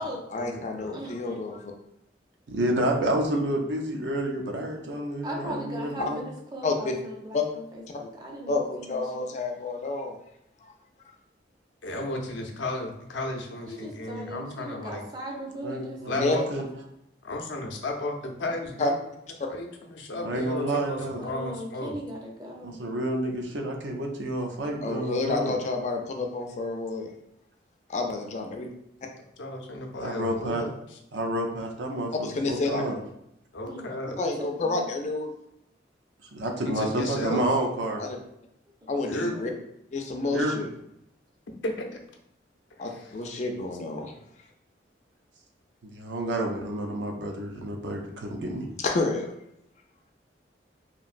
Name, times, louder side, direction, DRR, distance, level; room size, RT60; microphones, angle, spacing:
voice 1, 0.3-1.7 6.6-6.9 7.3-7.4 8.5-10.2 16.2-16.4 18.8-18.9 24.8-27.1 27.9-28.7 32.2-32.8 34.2-35.3 38.0-38.2 38.9-39.5 39.9-40.7 42.8-44.1 48.8-49.3, left 3 dB, 40° left, 3 dB, 0.3 m, -29 dB
voice 2, 0.9-1.4 5.2-9.3 13.7-16.3 18.4-18.5 20.1-20.6 21.2-22.8 33.6-34.9 38.8-39.5, right 1 dB, 20° right, -1 dB, 0.5 m, -39 dB
voice 3, 2.5-6.2 15.6-16.7 20.2-21.2 22.6-25.5 30.0-30.7 31.1-32.9 36.3-38.0 40.3-40.6 45.9-48.6, right 1 dB, 80° right, 2 dB, 0.5 m, -29 dB
voice 4, 11.8-15.0 16.1-16.4 17.3-19.0 19.5-22.0 29.4-31.0 33.5-34.2 36.7-37.4 39.0-39.4 41.6-42.0 42.9-43.1, left 1 dB, 90° left, 2 dB, 0.5 m, -34 dB
3.0 x 2.6 x 2.4 m, 0.80 s
head